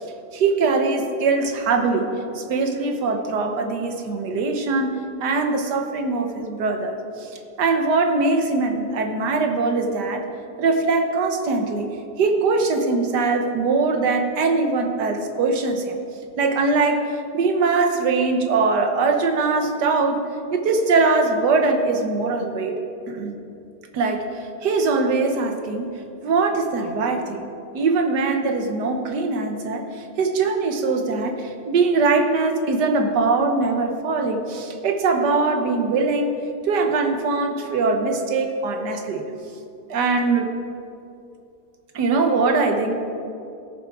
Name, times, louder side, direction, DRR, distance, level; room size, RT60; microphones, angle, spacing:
voice 1, 0.3-4.9 5.2-7.3 7.6-10.3 10.6-11.9 12.2-16.0 16.4-20.2 20.5-22.8 23.1-23.4 23.9-24.3 24.6-25.9 26.2-36.4 36.6-39.2 39.9-40.5 41.9-42.9, right 3 dB, 85° right, 5 dB, 1.7 m, -22 dB
16.5 x 7.1 x 4.7 m, 2.7 s
omnidirectional pair, 1.7 m